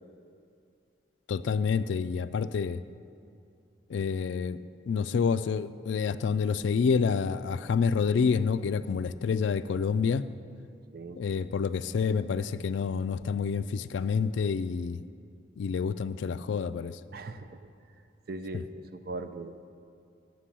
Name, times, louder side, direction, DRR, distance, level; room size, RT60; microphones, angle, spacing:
voice 1, 1.3-2.8 3.9-4.6 4.9-10.2 11.2-15.0 15.6-17.0 18.5-18.6, left 5 dB, 80° left, 14 dB, 0.3 m, -28 dB
voice 2, 17.1-17.6 18.3-19.6, right 2 dB, 55° right, 9 dB, 0.5 m, -39 dB
9.9 x 6.1 x 7.5 m, 2.4 s
head